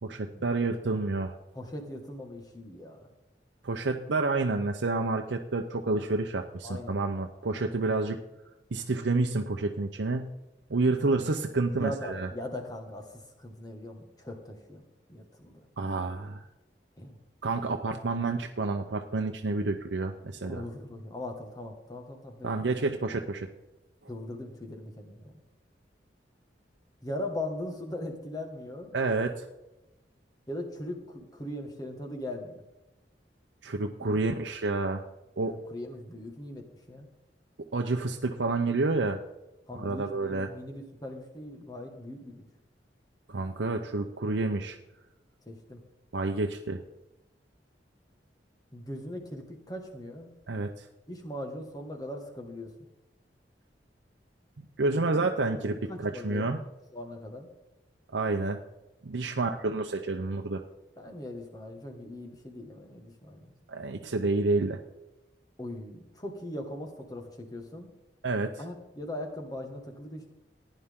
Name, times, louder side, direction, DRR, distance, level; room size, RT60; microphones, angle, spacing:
voice 1, 0.0-1.3 3.6-8.2 8.7-10.3 10.7-12.3 15.8-16.4 17.4-20.6 22.4-23.5 28.9-29.5 33.6-35.0 35.4-35.5 37.7-39.2 39.7-40.5 43.3-44.8 46.1-46.8 50.5-50.9 54.8-55.7 56.0-56.6 58.1-58.6 59.0-60.6 63.7-64.8 68.2-68.5, right 3 dB, 85° right, 4 dB, 0.7 m, -29 dB
voice 2, 1.5-3.1 6.6-7.0 11.7-15.7 15.9-16.0 17.0-17.2 20.4-22.5 24.1-25.4 27.0-29.0 30.5-32.6 34.0-34.2 35.5-37.1 39.7-42.4 45.5-45.8 48.7-50.3 51.1-52.7 54.9-55.2 55.5-55.6 55.9-56.6 56.9-57.5 59.3-59.5 61.0-63.5 65.6-67.9 68.6-70.3, left 1 dB, 20° left, 2 dB, 1.7 m, -40 dB
15.5 x 10.0 x 3.7 m, 0.99 s
head